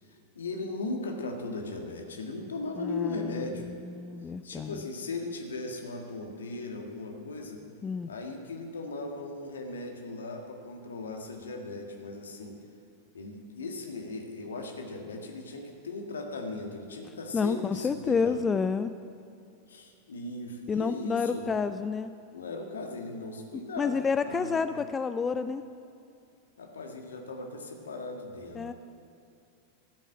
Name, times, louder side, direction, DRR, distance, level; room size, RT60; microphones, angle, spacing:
voice 1, 0.0-3.7 4.4-7.6 8.1-12.6 13.1-18.5 19.7-21.5 22.3-24.6 26.6-28.7, left 2 dB, 70° left, 3 dB, 1.7 m, -38 dB
voice 2, 2.8-4.8 7.8-8.1 17.3-18.9 20.7-22.1 23.8-25.6 28.6-28.7, left 5 dB, 20° left, 11 dB, 0.4 m, -29 dB
13.0 x 8.2 x 7.8 m, 2.5 s
figure-of-eight pair, 90°, 0 cm